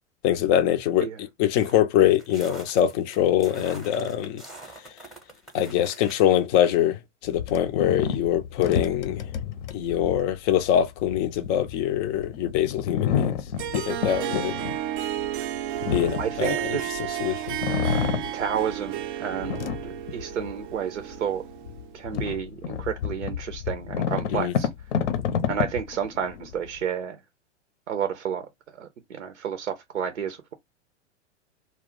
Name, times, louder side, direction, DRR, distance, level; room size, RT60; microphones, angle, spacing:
voice 1, 0.2-4.4 4.8-4.9 5.5-9.3 9.7-13.4 13.7-14.6 15.9-17.6 24.3-24.5, left 11 dB, 30° left, 0.4 m, -24 dB
sound 1, 1.6-6.2, right 1 dB, ahead, 0.7 m, -45 dB
sound 2, 7.3-17.1 17.5-18.9 19.3-20.6 21.1-21.2 21.7-26.8, left 8 dB, 75° left, 0.7 m, -30 dB
Harp, 13.6-22.0, right 12 dB, 45° right, 0.4 m, -32 dB
voice 2, 16.2-17.2 18.3-19.6 20.1-21.4 21.9-24.7 25.5-27.2 27.9-28.5 28.8-30.5, right 8 dB, 85° right, 0.6 m, -31 dB
2.3 x 2.0 x 3.6 m
hypercardioid pair, 105°, 36 cm